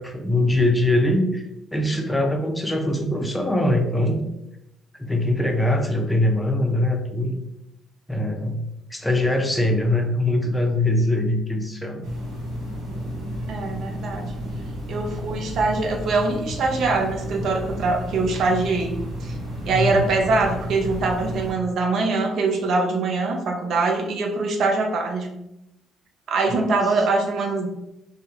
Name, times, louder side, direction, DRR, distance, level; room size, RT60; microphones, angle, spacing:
voice 1, 0.0-1.4 1.7-4.2 5.0-7.4 8.1-12.1 19.6-20.1, left 1 dB, 10° left, 3 dB, 0.5 m, -22 dB
sound 1, 12.0-21.5, equal, 85° right, 0.9 m, -32 dB
voice 2, 13.5-14.3 14.9-19.3 19.6-25.3 26.3-27.7, right 3 dB, 65° right, 2 dB, 0.4 m, -23 dB
2.2 x 2.1 x 2.9 m, 0.87 s
hypercardioid pair, 55°, 0 cm